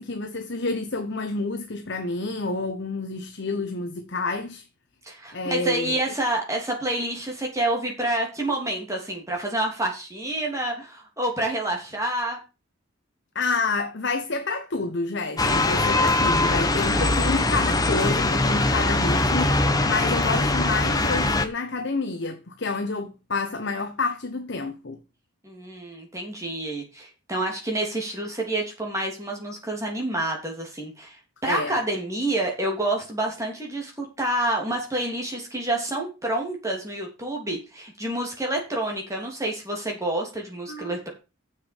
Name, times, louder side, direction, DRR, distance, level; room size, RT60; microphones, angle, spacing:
voice 1, 0.0-4.6 5.3-6.0 13.3-25.0 31.4-31.8 40.7-41.0, left 3 dB, 55° left, 1.0 m, -29 dB
voice 2, 5.0-12.4 25.4-41.1, right 1 dB, 15° right, 3.1 m, -28 dB
sound 1, 15.4-21.5, left 2 dB, 20° left, 0.9 m, -22 dB
7.5 x 6.6 x 7.2 m
head